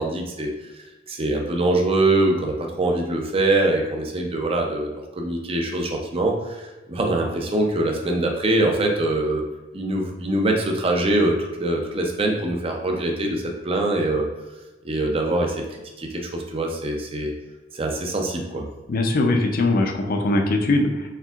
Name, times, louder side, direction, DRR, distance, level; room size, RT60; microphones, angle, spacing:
voice 1, 0.0-9.4 9.7-14.3 14.8-17.3 17.7-18.7, right 2 dB, 30° right, 2 dB, 0.5 m, -23 dB
voice 2, 18.9-21.1, left 2 dB, 50° left, 3 dB, 0.5 m, -21 dB
4.4 x 3.5 x 2.4 m, 1.1 s
head